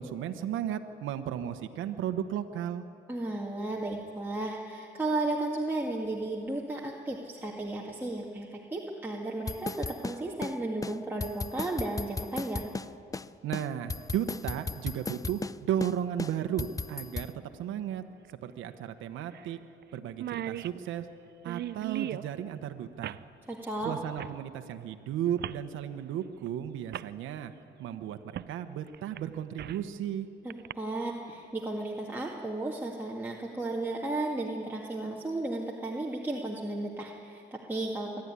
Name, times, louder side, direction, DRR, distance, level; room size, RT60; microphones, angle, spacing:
voice 1, 0.0-2.8 13.4-18.0 18.4-19.6 19.9-21.1 21.4-23.2 23.8-27.5 27.8-30.3, right 10 dB, 85° right, 8 dB, 1.0 m, -34 dB
voice 2, 3.1-12.7 23.5-23.9 30.4-38.2, right 2 dB, 10° right, -3 dB, 1.9 m, -34 dB
sound 1, 9.5-10.6 10.8-10.9 11.2-12.9 13.1-13.3 13.5-15.6 15.8-15.9 16.2-17.3, left 4 dB, 15° left, 0.4 m, -35 dB
sound 2, 16.4-16.5 18.3-18.4 18.7-18.8 19.3-19.5 19.8-19.9 20.1-22.3 23.0-23.3 24.2-24.4 25.4-25.6 26.5-26.6 26.9-27.1 28.4-28.5 28.9-29.9 30.5-30.7, right 12 dB, 55° right, 0.5 m, -38 dB
25.0 x 12.0 x 9.8 m, 2.6 s
cardioid pair, 90°, 20 cm